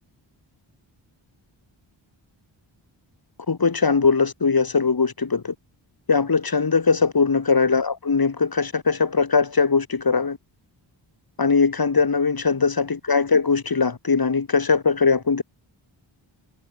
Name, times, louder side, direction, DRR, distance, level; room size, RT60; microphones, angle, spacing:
voice 1, 3.5-5.5 6.1-10.4 11.4-15.4, left 5 dB, 50° left, 6.1 m, -20 dB
wide cardioid pair, 90°, 47 cm